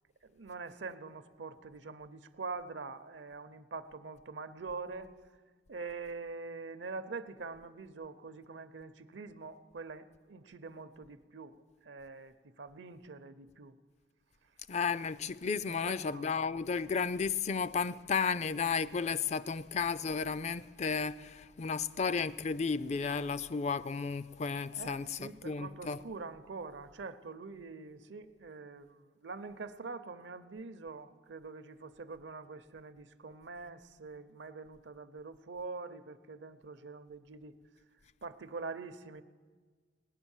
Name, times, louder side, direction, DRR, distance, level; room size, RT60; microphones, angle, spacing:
voice 1, 0.2-5.1 5.7-11.6 11.8-13.8 15.7-16.4 24.7-37.5 38.2-39.2, right 4 dB, 75° right, 0.7 m, -44 dB
voice 2, 14.7-26.0, left 5 dB, 40° left, 0.4 m, -33 dB
18.0 x 10.5 x 7.2 m
head